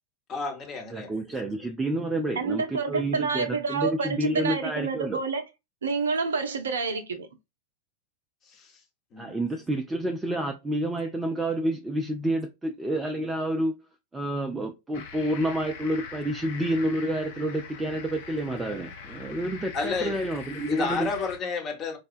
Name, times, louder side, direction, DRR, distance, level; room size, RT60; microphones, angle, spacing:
voice 1, 0.3-1.1 8.5-8.7 9.1-9.4 19.7-20.2 20.7-22.0, left 4 dB, 30° left, 1.0 m, -31 dB
voice 2, 0.9-5.2 9.2-13.7 14.1-21.1, right 1 dB, 10° right, 0.4 m, -29 dB
voice 3, 2.4-5.4 5.8-7.3, right 4 dB, 65° right, 0.5 m, -28 dB
sound 1, 14.9-21.4, left 5 dB, 55° left, 0.7 m, -42 dB
4.1 x 2.2 x 2.4 m
figure-of-eight pair, 90°, 0 cm